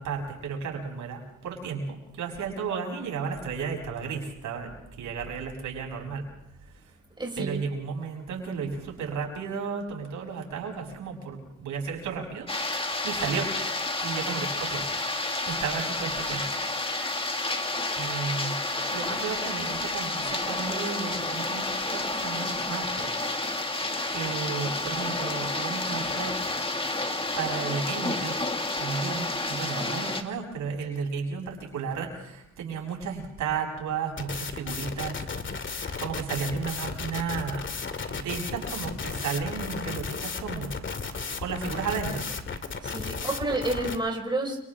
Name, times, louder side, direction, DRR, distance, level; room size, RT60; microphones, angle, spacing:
voice 1, 0.0-6.3 6.7-6.9 7.4-13.5 14.0-14.9 15.5-16.5 18.0-23.3 23.6-23.7 24.1-26.6 27.4-28.4 28.8-35.2 35.9-37.7 38.1-40.8 41.4-42.3, right 5 dB, 75° right, 1 dB, 7.1 m, -33 dB
voice 2, 7.2-7.6 42.8-44.6, right 2 dB, 15° right, 0 dB, 5.6 m, -29 dB
sound 1, 12.5-30.2, left 2 dB, 20° left, 2.4 m, -30 dB
sound 2, 34.2-44.0, left 5 dB, 40° left, 2.4 m, -34 dB
30.0 x 28.0 x 3.8 m, 0.86 s
cardioid pair, 90°, 30 cm